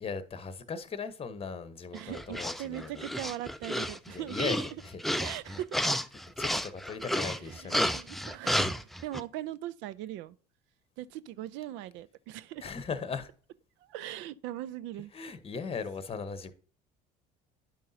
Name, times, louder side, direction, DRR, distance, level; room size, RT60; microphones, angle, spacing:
voice 1, 0.0-2.9 4.1-4.6 4.9-5.3 6.4-7.9 12.6-13.3 15.1-16.5, left 5 dB, 30° left, 0.9 m, -38 dB
voice 2, 1.9-4.5 5.2-6.0 7.3-10.4 11.0-12.7 13.8-15.1, right 13 dB, 65° right, 0.4 m, -40 dB
sound 1, 2.0-9.2, equal, ahead, 0.4 m, -31 dB
10.5 x 5.4 x 2.7 m
hypercardioid pair, 75°, 21 cm